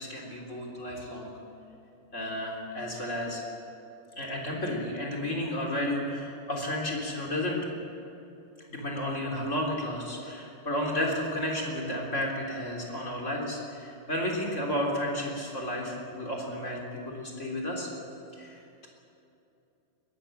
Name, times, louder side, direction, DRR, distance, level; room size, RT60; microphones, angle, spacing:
voice 1, 0.0-1.3 2.1-3.4 4.2-7.6 8.7-17.9 18.3-18.9, left 1 dB, 20° left, -1 dB, 3.3 m, -32 dB
22.0 x 14.5 x 8.9 m, 2.8 s
omnidirectional pair, 4.6 m